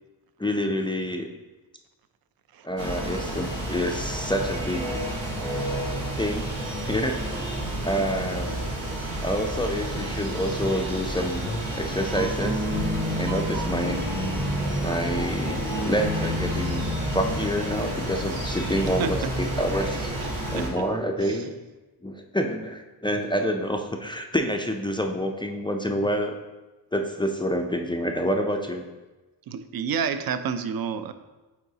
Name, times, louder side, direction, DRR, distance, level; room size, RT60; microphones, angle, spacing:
voice 1, 0.4-1.3 2.6-4.9 6.2-6.5 6.9-7.2 7.8-8.5 9.2-11.5 11.7-12.6 13.1-14.1 14.8-16.9 17.1-20.1 20.5-21.5 22.0-26.4 26.9-28.8, equal, 10° left, 3 dB, 0.3 m, -27 dB
sound 1, 2.8-20.7, right 1 dB, 90° right, 1.5 m, -30 dB
sound 2, 12.0-18.7 20.2-20.9, left 1 dB, 25° right, 0.8 m, -32 dB
voice 2, 29.5-31.1, right 6 dB, 55° right, 11 dB, 0.5 m, -29 dB
8.5 x 4.0 x 2.7 m, 1.1 s
cardioid pair, 90°, 45 cm